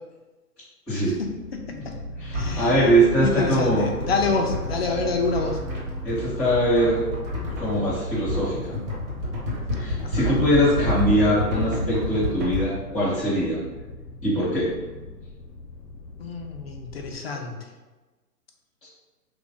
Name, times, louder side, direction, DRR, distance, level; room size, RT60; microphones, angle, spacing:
voice 1, 0.9-1.9 2.3-2.7 3.2-5.6 10.0-10.4 16.2-17.6, left 3 dB, 40° left, 3 dB, 0.4 m, -28 dB
sound 1, 1.0-17.2, equal, 80° left, 0.9 m, -39 dB
voice 2, 2.2-3.9 6.0-7.1 7.6-8.8 9.8-13.6 14.2-14.7, right 1 dB, ahead, -11 dB, 0.6 m, -22 dB
sound 2, 2.3-12.6, left 1 dB, 30° right, 0.9 m, -29 dB
3.1 x 2.6 x 3.5 m, 1.2 s
hypercardioid pair, 145°, 48 cm